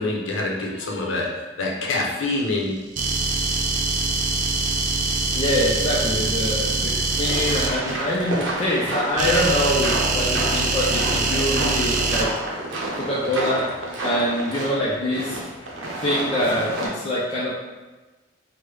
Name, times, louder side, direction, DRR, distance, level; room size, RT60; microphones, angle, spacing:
voice 1, 0.0-2.7, left 2 dB, 80° left, -1 dB, 0.6 m, -26 dB
sound 1, 3.0-7.7 9.2-12.2, right 3 dB, 45° right, 0.3 m, -23 dB
voice 2, 5.3-12.3 12.9-13.7 14.0-15.4 16.0-17.5, left 1 dB, 35° left, -6 dB, 0.4 m, -24 dB
sound 2, 7.1-16.9, right 1 dB, 75° right, 0.7 m, -29 dB
3.2 x 2.1 x 3.3 m, 1.2 s
head